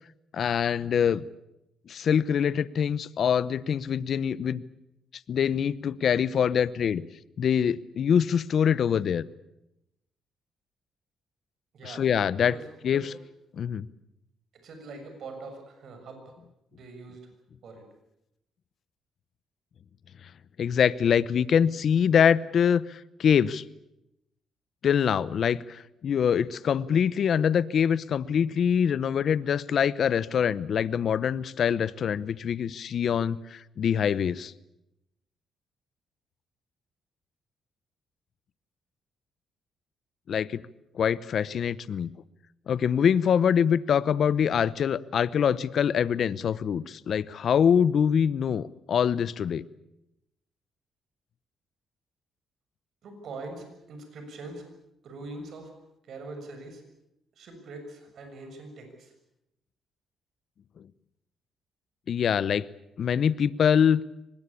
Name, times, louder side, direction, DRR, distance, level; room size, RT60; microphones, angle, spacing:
voice 1, 0.3-1.2 1.9-4.6 5.3-7.0 7.4-9.2 11.8-12.6 12.8-13.1 13.5-13.9 20.6-23.6 24.8-34.5 40.3-40.6 40.9-42.1 42.7-49.6 62.1-62.7 63.0-64.0, left 8 dB, 60° left, 18 dB, 0.8 m, -24 dB
voice 2, 11.7-12.1 12.4-12.6 12.9-13.0 14.6-16.2 16.7-17.2 17.6-17.8 53.0-54.6 55.0-55.7 56.1-56.8 57.4-59.1, right 3 dB, 65° right, 6 dB, 6.8 m, -42 dB
24.5 x 20.0 x 8.5 m, 0.86 s
cardioid pair, 90°, 0 cm